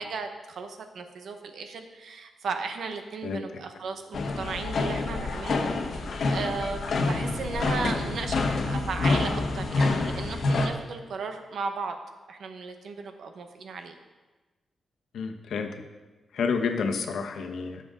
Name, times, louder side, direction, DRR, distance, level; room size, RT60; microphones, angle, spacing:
voice 1, 0.0-11.9 12.3-13.9, right 4 dB, 65° right, 6 dB, 1.0 m, -35 dB
sound 1, 4.1-10.7, left 3 dB, 55° left, 1.1 m, -27 dB
voice 2, 15.1-15.7 16.3-17.8, left 5 dB, 80° left, 5 dB, 1.1 m, -29 dB
16.5 x 6.9 x 3.8 m, 1.2 s
wide cardioid pair, 175°, 0 cm